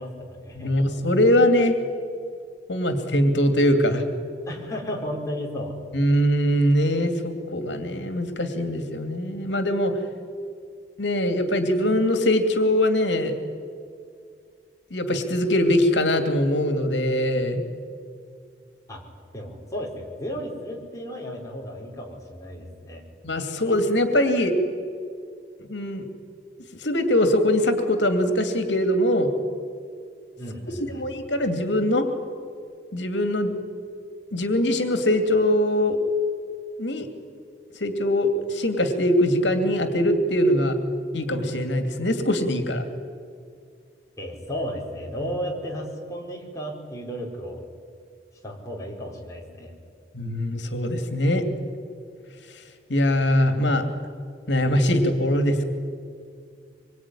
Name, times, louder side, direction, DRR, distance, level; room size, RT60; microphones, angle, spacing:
voice 1, 0.0-0.7 4.5-5.7 18.9-19.0 19.3-23.0 30.4-31.1 44.2-47.6 48.4-49.7, equal, 15° left, -2 dB, 5.1 m, -34 dB
voice 2, 0.5-1.8 2.7-4.0 5.9-9.9 11.0-13.3 14.9-17.6 23.2-24.5 25.7-26.1 26.8-29.3 30.9-32.0 32.9-33.5 34.3-36.0 36.8-37.1 37.8-40.8 41.1-42.8 50.1-51.4 52.5-52.6 52.9-53.8 54.5-55.7, left 1 dB, 85° left, 7 dB, 2.5 m, -22 dB
25.5 x 23.0 x 9.9 m, 2.3 s
head